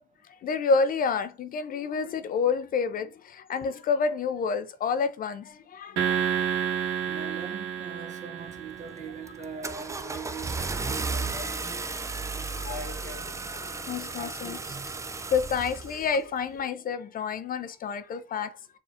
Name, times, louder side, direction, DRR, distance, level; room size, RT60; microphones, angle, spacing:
voice 1, 0.4-6.4 12.6-12.8 13.9-14.6 15.3-18.6, left 5 dB, 45° left, 0.5 m, -29 dB
sound 1, 6.0-9.4, right 8 dB, 70° right, 0.9 m, -30 dB
voice 2, 7.0-11.8 12.3-13.5 14.2-15.1, right 4 dB, 35° right, 1.0 m, -42 dB
Car / Engine starting, 8.5-8.8 9.3-16.2, right 3 dB, 15° right, 0.4 m, -34 dB
4.8 x 2.4 x 2.7 m
hypercardioid pair, 65°, 21 cm